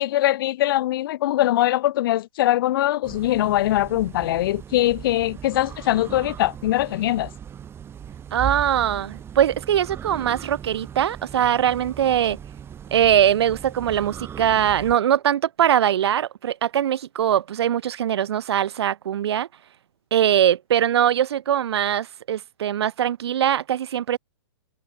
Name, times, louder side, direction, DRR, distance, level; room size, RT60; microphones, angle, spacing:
voice 1, 0.0-7.3, left 14 dB, 50° left, 1.4 m, -22 dB
sound 1, 3.0-15.0, right 8 dB, 15° right, 5.6 m, -38 dB
voice 2, 8.3-12.4 12.9-19.5 20.1-24.2, right 10 dB, 65° right, 2.7 m, -21 dB
hypercardioid pair, 145°, 15 cm